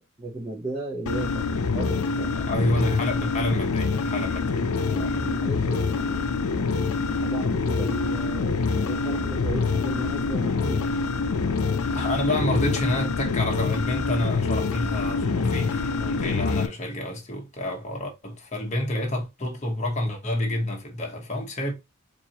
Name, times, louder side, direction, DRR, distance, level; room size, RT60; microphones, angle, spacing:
voice 1, 0.0-2.4 4.2-4.4 4.8-6.7 7.0-10.9, right 2 dB, 20° right, 0.8 m, -36 dB
sound 1, 1.1-16.7, left 4 dB, 90° left, 0.5 m, -26 dB
voice 2, 2.3-5.3 11.9-21.7, left 1 dB, 35° left, 1.0 m, -29 dB
4.5 x 2.6 x 2.8 m
head